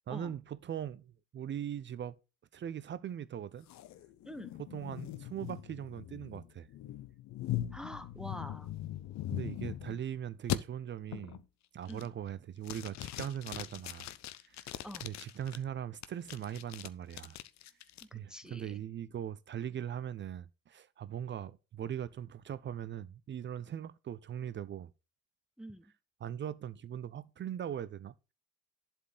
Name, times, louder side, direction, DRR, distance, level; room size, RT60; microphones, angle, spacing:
voice 1, 0.1-2.2 2.5-3.7 4.6-6.7 9.3-11.4 11.7-14.1 14.4-17.4 18.1-24.9 26.2-28.1, right 9 dB, 25° right, 0.6 m, -40 dB
sound 1, 3.7-10.0 10.5-10.6 11.1-11.4 11.8-12.3 12.6-15.6 16.0-18.0, left 13 dB, 40° left, 0.8 m, -40 dB
voice 2, 7.7-8.7 11.9-12.1 14.8-15.1 18.1-18.8 25.6-25.9, equal, ahead, 1.1 m, -46 dB
11.5 x 4.5 x 6.8 m
figure-of-eight pair, 65°, 43 cm